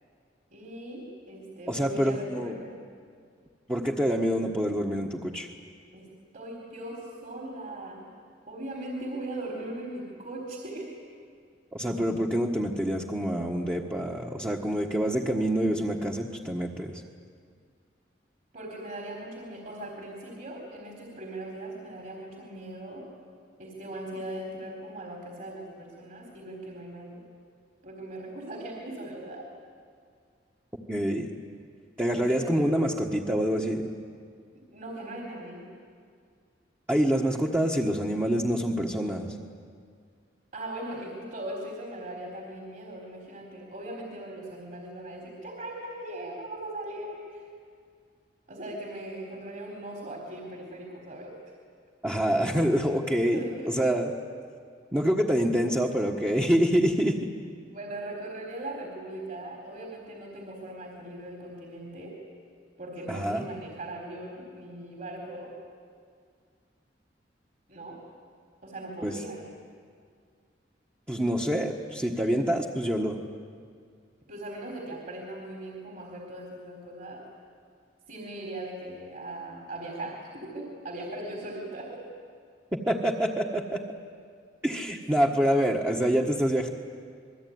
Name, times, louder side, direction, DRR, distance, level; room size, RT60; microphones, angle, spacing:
voice 1, 0.5-2.9 5.9-6.1 6.3-8.1 8.5-10.9 18.5-23.0 23.6-27.2 27.8-29.5 32.1-32.6 34.5-35.7 40.5-47.5 48.5-51.4 53.3-54.0 57.7-62.2 62.8-65.5 67.7-68.0 68.6-69.4 74.3-77.2 78.1-82.0, right 1 dB, 50° right, 0 dB, 4.1 m, -39 dB
voice 2, 1.7-2.5 3.7-5.5 11.7-17.0 30.9-31.3 32.0-33.9 36.9-39.3 52.0-54.1 54.9-57.2 63.1-63.4 69.0-69.2 71.1-73.2 82.7-83.8 84.6-86.7, equal, 10° right, -1 dB, 1.4 m, -26 dB
28.0 x 22.0 x 9.5 m, 2.1 s
head